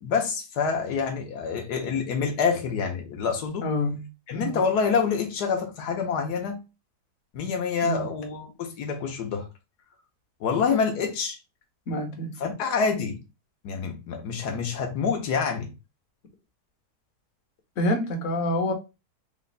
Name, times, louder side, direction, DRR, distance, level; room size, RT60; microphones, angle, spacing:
voice 1, 0.0-3.7 4.3-6.6 7.3-9.5 10.4-11.4 12.4-13.2 13.6-15.7, left 5 dB, 80° left, 1.4 m, -27 dB
voice 2, 3.6-4.0 4.3-4.6 7.8-8.1 11.9-12.4 17.8-18.7, left 1 dB, 55° left, 1.2 m, -27 dB
4.0 x 2.2 x 4.0 m
omnidirectional pair, 1.7 m